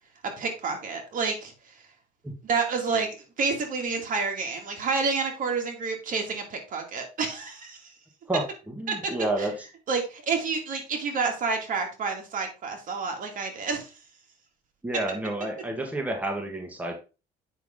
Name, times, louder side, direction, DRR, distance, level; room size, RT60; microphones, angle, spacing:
voice 1, 0.2-1.5 2.4-7.8 8.9-9.1 9.4-9.5 9.9-13.9, right 4 dB, 50° right, 3 dB, 2.4 m, -29 dB
voice 2, 8.3-9.7 14.8-17.0, right 1 dB, 10° right, 2 dB, 1.8 m, -30 dB
8.2 x 5.9 x 3.8 m, 0.31 s
cardioid pair, 110°, 17 cm